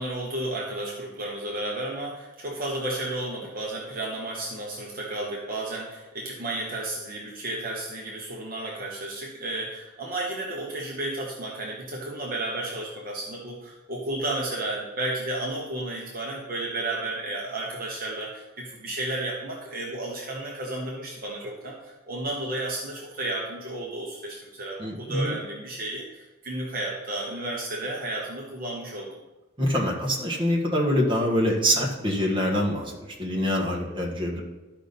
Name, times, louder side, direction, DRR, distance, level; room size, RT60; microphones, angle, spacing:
voice 1, 0.0-29.2, right 2 dB, 45° right, -2 dB, 1.1 m, -32 dB
voice 2, 24.8-25.3 29.6-32.9 33.2-34.4, equal, 25° right, -2 dB, 1.6 m, -25 dB
12.5 x 5.2 x 4.2 m, 1.1 s
head